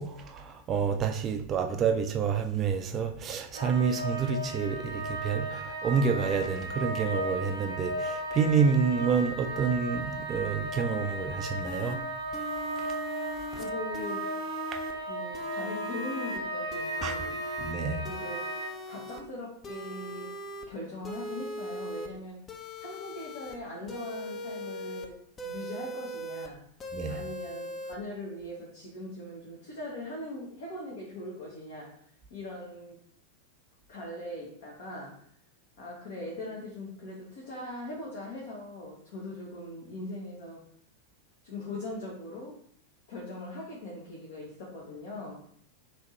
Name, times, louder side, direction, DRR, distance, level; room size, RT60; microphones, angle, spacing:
voice 1, 0.0-12.0 14.7-14.8 17.0-17.3 17.6-18.1 26.9-27.2, right 6 dB, 30° right, 0.3 m, -28 dB
sound 1, 3.5-18.7, right 1 dB, 90° left, 1.1 m, -35 dB
sound 2, 11.6-12.0 12.3-13.6 13.9-14.9 15.3-16.4 16.7-17.7 18.0-19.2 19.6-20.7 21.0-22.1 22.5-23.6 23.9-25.1 25.4-26.5 26.8-28.0, left 1 dB, 25° left, 0.5 m, -40 dB
voice 2, 13.5-14.3 14.9-17.4 18.0-20.3 20.7-22.4 22.8-26.6 27.1-32.0 32.3-33.0 33.9-35.3 35.8-40.7 41.4-42.6 43.1-45.4, left 1 dB, 55° left, 1.0 m, -41 dB
3.5 x 2.7 x 3.2 m
figure-of-eight pair, 90°, 0 cm